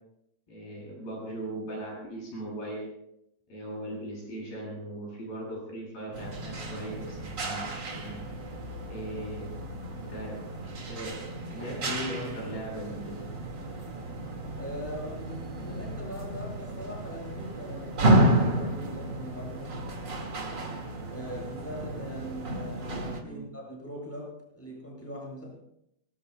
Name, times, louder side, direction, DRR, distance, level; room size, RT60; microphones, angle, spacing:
voice 1, 0.5-2.9 3.5-8.2 8.9-9.6 10.0-10.5 10.9-13.3 23.1-23.5, right 1 dB, 85° left, -3 dB, 9.7 m, -39 dB
sound 1, 6.1-23.2, right 1 dB, 35° right, 2.2 m, -31 dB
voice 2, 14.5-19.8 21.1-25.5, equal, 5° left, -3 dB, 7.8 m, -41 dB
24.5 x 21.5 x 2.3 m, 0.77 s
omnidirectional pair, 4.1 m